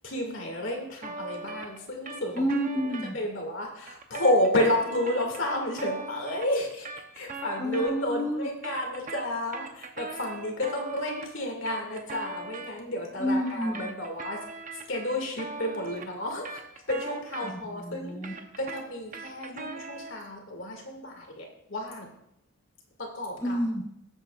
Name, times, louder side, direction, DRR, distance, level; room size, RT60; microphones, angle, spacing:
voice 1, 0.0-2.5 3.1-6.9 7.1-16.6 16.9-18.2 18.6-22.1 23.0-23.6, left 1 dB, 60° left, 1 dB, 2.3 m, -31 dB
sound 1, 1.0-3.1 3.9-8.2 8.5-12.7 13.5-17.8 18.1-20.2, right 3 dB, 40° right, 0.8 m, -40 dB
voice 2, 2.3-3.2 7.6-8.5 13.2-13.9 17.4-18.3 23.4-23.8, equal, 15° left, 0 dB, 0.8 m, -29 dB
19.5 x 8.1 x 2.5 m, 0.80 s
head